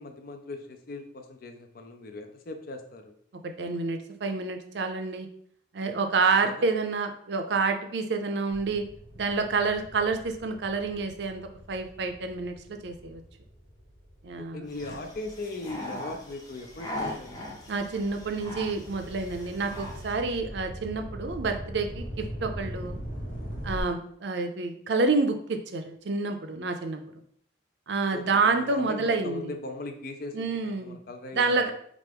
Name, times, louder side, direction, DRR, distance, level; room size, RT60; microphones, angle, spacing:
voice 1, 0.0-3.1 6.4-6.7 14.4-17.6 28.1-31.7, left 2 dB, 50° left, 6 dB, 0.5 m, -39 dB
voice 2, 3.6-5.3 5.7-8.8 9.2-11.4 11.7-13.2 14.2-14.6 17.7-22.9 23.6-27.0 27.9-29.5 30.3-31.0 31.3-31.7, right 4 dB, 65° right, 6 dB, 0.5 m, -28 dB
sound 1, 8.5-15.2 15.8-23.8, equal, 85° left, 0.9 m, -41 dB
sound 2, 14.7-20.2, left 1 dB, 20° left, 0.7 m, -40 dB
4.5 x 2.5 x 3.4 m, 0.64 s
head